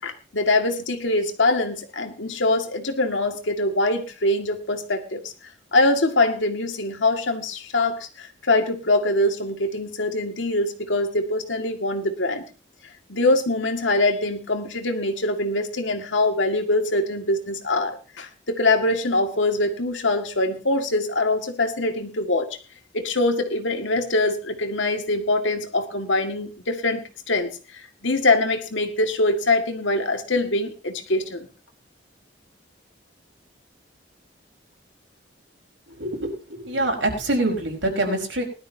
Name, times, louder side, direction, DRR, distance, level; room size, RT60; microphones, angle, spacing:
voice 1, 0.0-5.2 5.7-12.4 13.1-22.5 22.9-31.5, left 2 dB, 85° left, 5 dB, 2.0 m, -23 dB
voice 2, 35.9-38.4, right 1 dB, 85° right, 1 dB, 4.9 m, -25 dB
20.0 x 12.5 x 2.8 m, 0.34 s
head